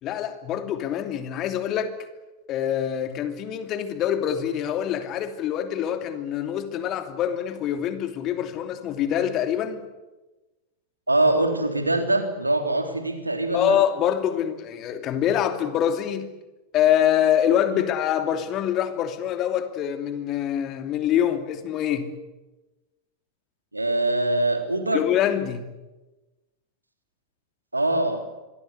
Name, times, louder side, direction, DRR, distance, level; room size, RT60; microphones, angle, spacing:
voice 1, 0.0-1.9 2.5-9.8 13.5-16.3 16.7-22.1 24.9-25.6, left 10 dB, 35° left, 8 dB, 2.9 m, -25 dB
voice 2, 11.1-13.8 17.7-17.8 23.7-25.0 27.7-28.2, right 2 dB, 85° right, 6 dB, 3.5 m, -23 dB
25.5 x 23.0 x 8.2 m, 1.1 s
figure-of-eight pair, 90°, 0 cm